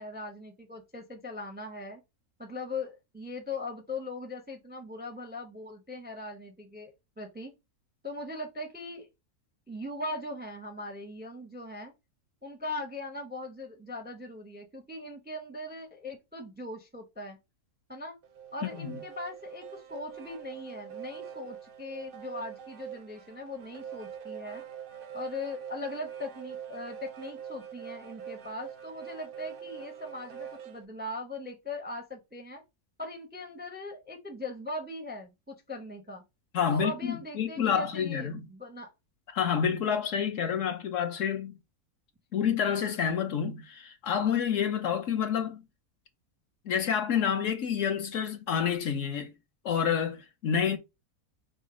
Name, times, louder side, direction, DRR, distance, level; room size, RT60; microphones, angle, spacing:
voice 1, 0.0-2.0 2.4-7.5 8.0-9.1 9.7-11.9 12.4-17.4 17.9-18.2 18.5-24.6 25.1-32.6 33.0-36.2 36.7-38.9, left 2 dB, 10° right, 0.5 m, -40 dB
sound 1, 18.2-30.8, right 9 dB, 65° right, 0.5 m, -44 dB
voice 2, 18.6-19.0 36.5-38.5 39.3-41.6 42.3-45.6 46.7-49.3 49.6-50.8, left 7 dB, 60° left, 1.0 m, -28 dB
5.1 x 2.1 x 4.7 m
omnidirectional pair, 1.6 m